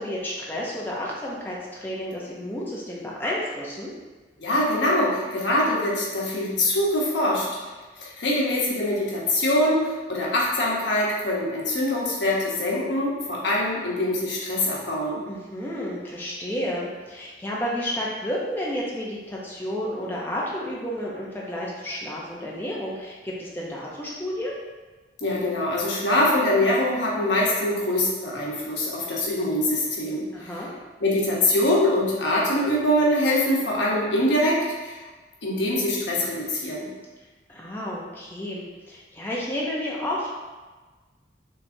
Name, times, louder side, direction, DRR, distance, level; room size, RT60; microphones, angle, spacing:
voice 1, 0.0-3.9 15.3-24.6 30.3-30.7 37.5-40.3, equal, 10° left, -5 dB, 0.6 m, -31 dB
voice 2, 4.4-7.5 8.0-15.2 25.2-30.3 31.0-35.0 35.4-36.9, left 1 dB, 80° left, -4 dB, 1.1 m, -23 dB
5.7 x 3.3 x 2.7 m, 1.3 s
head